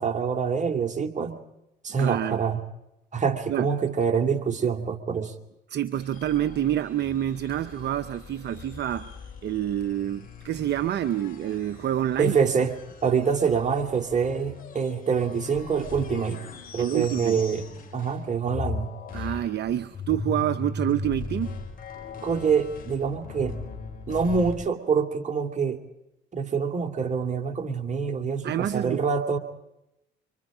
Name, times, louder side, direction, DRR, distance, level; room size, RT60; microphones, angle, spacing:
voice 1, 0.0-1.4 1.8-2.6 3.1-5.3 12.2-12.7 13.0-16.4 16.7-17.6 17.9-18.9 22.2-23.6 24.1-25.8 26.3-29.4, right 6 dB, 35° right, 5 dB, 2.7 m, -25 dB
voice 2, 2.0-2.4 3.5-3.7 5.7-9.1 9.4-12.4 16.8-17.4 19.1-21.6 28.4-29.0, right 11 dB, 55° right, 11 dB, 0.9 m, -27 dB
sound 1, 5.9-18.2 18.5-24.5, left 4 dB, 40° left, 5.7 m, -39 dB
26.0 x 25.0 x 5.1 m, 0.87 s
supercardioid pair, 70°, 21 cm